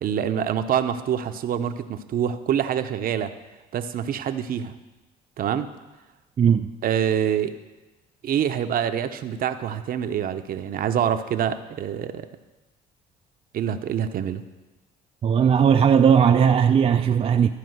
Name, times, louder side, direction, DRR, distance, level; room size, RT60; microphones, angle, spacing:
voice 1, 0.0-3.3 3.7-4.7 5.4-5.7 6.8-7.5 8.2-12.3 13.5-14.4, right 9 dB, 55° right, 9 dB, 0.8 m, -26 dB
voice 2, 6.4-6.7 15.2-17.5, right 7 dB, 35° right, 6 dB, 0.4 m, -17 dB
13.0 x 5.0 x 7.9 m, 1.1 s
cardioid pair, 90°, 18 cm